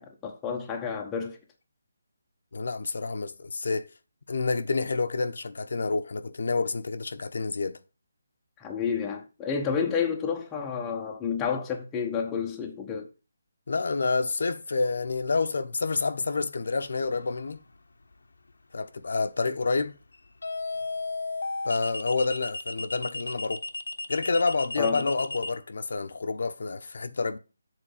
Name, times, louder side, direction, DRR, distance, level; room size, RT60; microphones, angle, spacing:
voice 1, 0.0-1.4 8.6-13.1 24.8-25.1, left 6 dB, 10° left, 0.9 m, -30 dB
voice 2, 2.5-3.9 4.3-7.8 13.7-17.6 18.7-19.9 21.6-23.6 24.1-27.4, left 4 dB, 60° left, 0.9 m, -28 dB
sound 1, 17.1-17.5 20.4-25.5, left 2 dB, 80° left, 1.1 m, -34 dB
7.7 x 4.0 x 6.5 m
hypercardioid pair, 170°, 0 cm